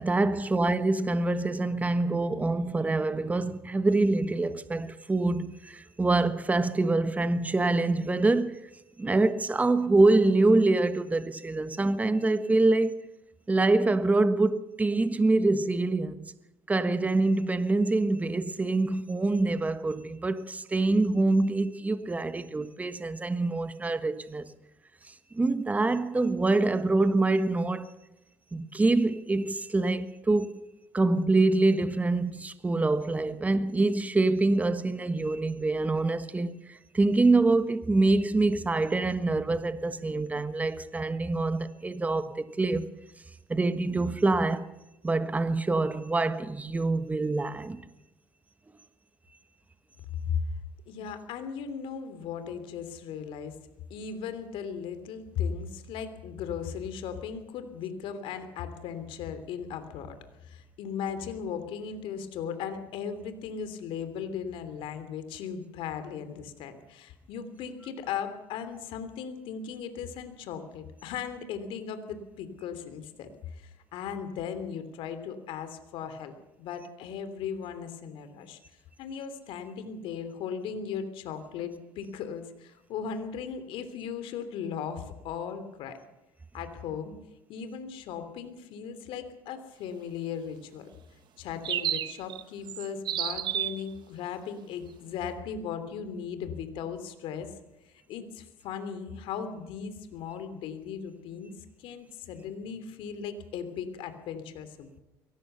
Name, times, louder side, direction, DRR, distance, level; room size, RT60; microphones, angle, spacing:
voice 1, 0.0-8.6 9.0-13.1 13.5-16.2 16.7-24.5 25.0-27.9 28.5-30.7 30.9-42.9 43.5-44.7 45.0-47.9, right 2 dB, 15° right, 1.4 m, -25 dB
voice 2, 50.9-53.6 53.9-60.2 60.4-78.6 79.0-86.0 86.5-87.1 87.5-90.9 91.4-97.5 98.1-105.0, left 7 dB, 70° left, 3.1 m, -37 dB
sound 1, 91.6-92.4 92.7-93.8, right 11 dB, 55° right, 1.3 m, -31 dB
23.5 x 18.0 x 6.9 m
supercardioid pair, 95°, 9 cm